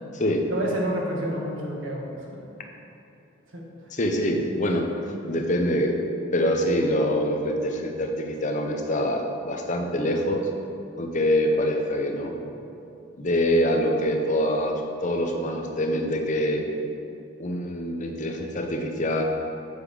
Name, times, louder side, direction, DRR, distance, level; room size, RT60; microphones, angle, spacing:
voice 1, 0.5-2.6 3.5-3.7, right 1 dB, 85° right, -2 dB, 1.5 m, -30 dB
voice 2, 3.9-6.0 6.3-10.4 11.0-12.3 13.2-16.7 17.4-19.2, equal, 40° left, 3 dB, 0.7 m, -25 dB
8.1 x 5.1 x 5.0 m, 2.7 s
head